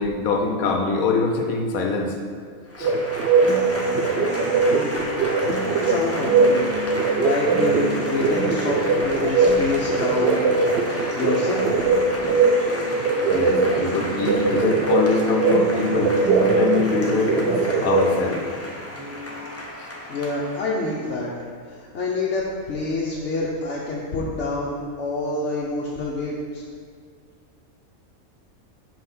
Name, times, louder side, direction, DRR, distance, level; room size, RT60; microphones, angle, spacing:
voice 1, 0.0-2.1 2.8-2.9 13.3-17.5 17.8-18.4, left 4 dB, 85° left, 2 dB, 1.2 m, -23 dB
Applause / Crowd, 2.7-21.2, left 1 dB, 15° left, 0.7 m, -34 dB
sound 1, 2.8-18.2, right 4 dB, 60° right, 0.8 m, -21 dB
sound 2, 3.5-19.5, left 1 dB, 15° right, 1.0 m, -34 dB
voice 2, 4.6-5.0 5.6-6.8 7.2-11.7 20.1-21.3 21.7-26.6, left 3 dB, 60° left, -5 dB, 1.1 m, -27 dB
5.6 x 4.7 x 6.0 m, 2.1 s
omnidirectional pair, 1.4 m